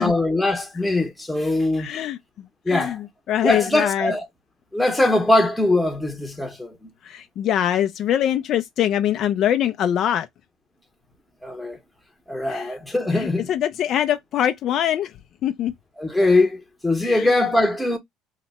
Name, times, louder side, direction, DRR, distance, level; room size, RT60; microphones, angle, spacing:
voice 1, 0.0-1.9 2.7-3.0 3.4-4.3 4.7-6.9 11.4-11.8 12.3-13.5 16.0-18.0, left 2 dB, 5° left, 0.8 m, -21 dB
voice 2, 1.8-4.1 7.0-10.3 12.5-12.7 13.1-15.1 15.4-15.7 17.0-17.3, left 10 dB, 50° left, 0.3 m, -23 dB
2.8 x 2.1 x 4.0 m
cardioid pair, 135°, 0 cm